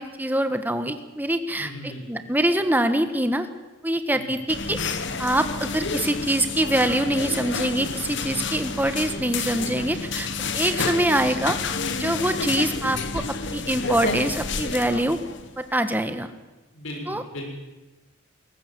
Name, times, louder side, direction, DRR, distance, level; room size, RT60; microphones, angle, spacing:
voice 1, 0.0-3.5 3.8-4.8 5.2-10.3 10.5-11.6 12.0-15.2 15.6-16.3 17.1-17.2, right 1 dB, 10° right, 9 dB, 1.3 m, -24 dB
voice 2, 1.6-2.2 4.1-4.3 16.7-17.5, left 1 dB, 75° left, 1 dB, 6.4 m, -37 dB
sound 1, 4.5-15.6, left 4 dB, 60° left, 1.5 m, -29 dB
21.5 x 19.0 x 7.6 m, 1.1 s
head